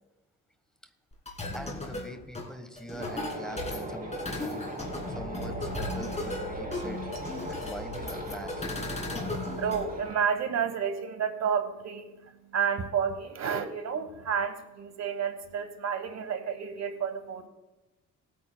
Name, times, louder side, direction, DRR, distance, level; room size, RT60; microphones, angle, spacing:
sound 1, 1.1-9.8, left 2 dB, 20° left, 2.6 m, -37 dB
voice 1, 1.5-4.7 5.1-7.0 7.5-8.6, equal, ahead, 7 dB, 1.2 m, -43 dB
sound 2, 3.0-10.2, equal, 30° right, 3.2 m, -38 dB
voice 2, 9.0-17.5, right 7 dB, 60° right, 8 dB, 1.3 m, -31 dB
19.5 x 9.1 x 2.2 m, 1.1 s
cardioid pair, 95°, 30 cm